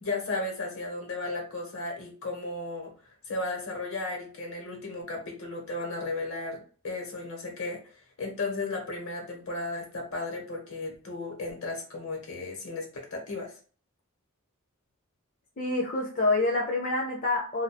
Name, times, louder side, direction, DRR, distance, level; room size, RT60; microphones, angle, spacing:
voice 1, 0.0-2.9 3.3-7.8 8.2-13.5, left 2 dB, 70° left, 0 dB, 1.2 m, -34 dB
voice 2, 15.6-17.6, left 2 dB, 40° left, -1 dB, 0.6 m, -27 dB
2.5 x 2.4 x 4.1 m, 0.40 s
head